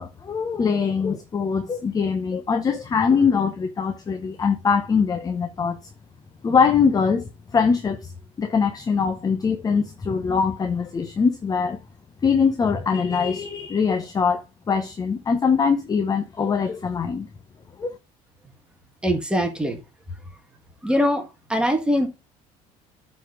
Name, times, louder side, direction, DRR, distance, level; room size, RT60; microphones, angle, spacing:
voice 1, 0.0-5.8 6.4-8.1 8.4-11.8 12.2-17.3 17.8-17.9, left 5 dB, 25° left, 0.9 m, -22 dB
voice 2, 19.0-19.8 20.8-21.2 21.5-22.1, equal, 5° right, 1.7 m, -22 dB
9.1 x 4.3 x 5.0 m
cardioid pair, 125°, 15 cm